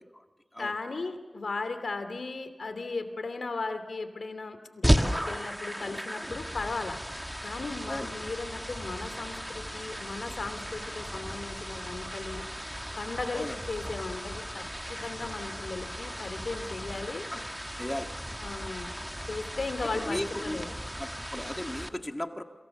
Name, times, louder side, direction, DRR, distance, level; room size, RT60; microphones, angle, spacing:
voice 1, 0.6-7.0 7.4-12.4 13.0-14.6 14.9-17.2 18.4-18.9 19.3-20.7, left 3 dB, 85° left, 9 dB, 2.9 m, -36 dB
sound 1, 4.8-21.9, equal, 5° right, 1.4 m, -34 dB
voice 2, 17.8-18.1 19.9-20.6 21.0-22.4, left 1 dB, 15° left, 6 dB, 1.9 m, -36 dB
29.0 x 27.0 x 7.2 m, 1.3 s
wide cardioid pair, 80°, 0 cm